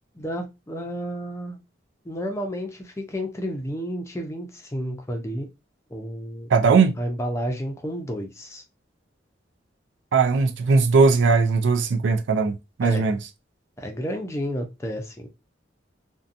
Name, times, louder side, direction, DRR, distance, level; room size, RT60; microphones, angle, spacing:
voice 1, 0.2-1.6 2.0-5.5 5.9-6.5 7.0-8.6 12.8-13.1 13.8-15.3, equal, 15° left, 0.5 m, -31 dB
voice 2, 6.5-6.9 10.1-13.2, right 4 dB, 75° right, 0.4 m, -19 dB
2.7 x 2.2 x 2.5 m
head